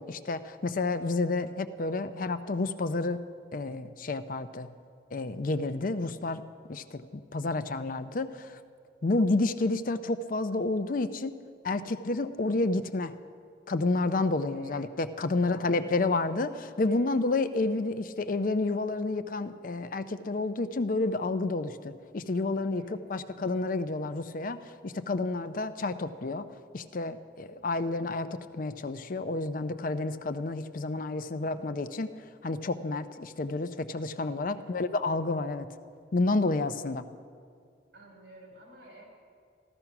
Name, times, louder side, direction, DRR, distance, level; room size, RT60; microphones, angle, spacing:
voice 1, 0.0-3.3 3.5-4.7 5.1-6.4 6.7-8.6 9.0-11.3 11.6-13.1 13.7-24.6 24.8-26.5 26.7-32.1 32.4-35.7 36.1-37.1, left 2 dB, 45° left, 11 dB, 0.5 m, -30 dB
voice 2, 15.4-16.0 16.8-17.1 22.8-23.4 31.4-31.8 34.5-34.8 37.9-39.0, right 1 dB, 75° right, -1 dB, 4.9 m, -52 dB
14.5 x 12.5 x 5.9 m, 2.2 s
head